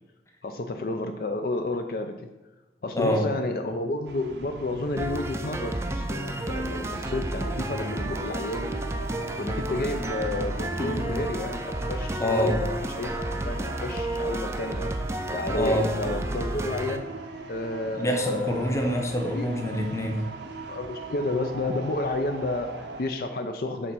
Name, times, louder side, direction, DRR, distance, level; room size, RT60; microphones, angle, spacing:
voice 1, 0.4-2.2 2.8-8.7 9.4-14.9 15.3-17.0 17.5-19.0 19.3-19.5 20.7-23.9, left 2 dB, 55° left, 6 dB, 0.4 m, -31 dB
voice 2, 2.9-3.3 10.8-11.2 12.2-12.6 15.5-15.9 17.9-20.2, equal, 15° left, 2 dB, 0.8 m, -26 dB
sound 1, 4.1-23.0, right 2 dB, 75° right, 0.7 m, -41 dB
sound 2, 5.0-17.0, right 1 dB, 15° right, 0.4 m, -31 dB
6.9 x 3.7 x 5.6 m, 1.2 s
head